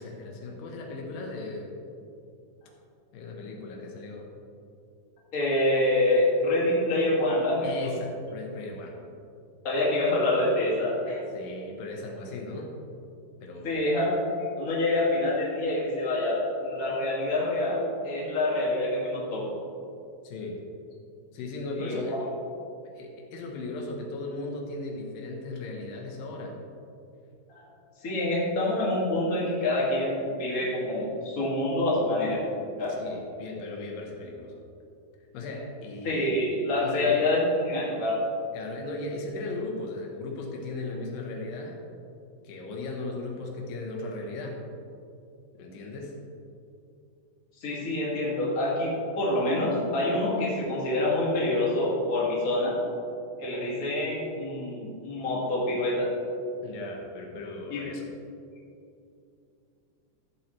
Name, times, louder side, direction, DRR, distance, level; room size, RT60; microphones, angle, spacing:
voice 1, 0.0-1.8 3.1-4.3 7.6-9.0 11.3-12.7 13.4-13.8 20.2-20.6 21.3-22.1 22.8-26.6 32.9-34.5 35.3-36.3 36.8-37.2 38.5-41.8 42.4-44.6 45.6-46.2 56.6-58.1, left 2 dB, 85° left, 1 dB, 2.9 m, -37 dB
voice 2, 5.3-7.9 9.6-11.2 13.6-14.1 14.4-19.6 21.8-22.0 27.5-27.6 28.0-32.4 32.8-32.9 36.0-38.2 47.6-52.8 53.4-56.1 57.7-57.8, left 1 dB, 30° left, -6 dB, 2.2 m, -26 dB
14.0 x 7.6 x 3.2 m, 2.6 s
omnidirectional pair, 3.9 m